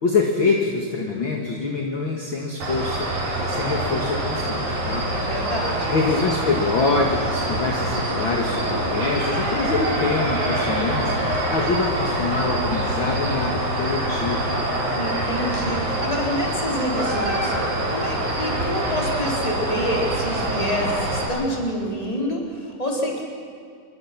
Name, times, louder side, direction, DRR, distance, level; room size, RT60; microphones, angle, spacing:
voice 1, 0.0-3.1 3.4-5.0 5.9-14.6, left 4 dB, 40° left, 0 dB, 2.1 m, -25 dB
sound 1, 2.6-21.2, right 1 dB, 50° right, 5.6 m, -25 dB
voice 2, 5.1-6.0 14.9-23.2, equal, 10° left, -2 dB, 3.7 m, -28 dB
27.5 x 23.0 x 6.1 m, 2.3 s
omnidirectional pair, 4.5 m